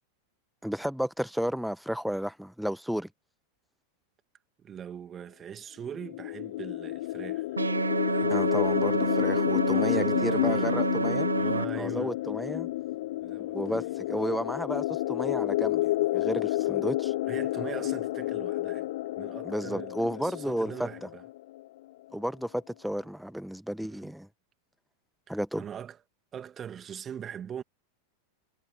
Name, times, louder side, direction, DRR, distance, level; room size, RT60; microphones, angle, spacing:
voice 1, 0.6-3.1 8.3-11.3 11.8-12.7 13.5-17.1 19.4-20.7 22.1-24.3 25.3-25.6, equal, ahead, 1.4 m, -32 dB
voice 2, 4.6-7.5 8.1-8.4 9.6-10.9 11.3-12.2 13.2-13.9 16.6-16.7 17.2-18.9 19.2-21.2 23.8-24.1 25.3-26.0 26.3-27.6, right 8 dB, 25° right, 2.1 m, -41 dB
sound 1, 5.9-21.6, left 16 dB, 55° left, 1.2 m, -30 dB
sound 2, 7.6-11.7, right 4 dB, 80° right, 0.6 m, -29 dB
figure-of-eight pair, 90°, 0 cm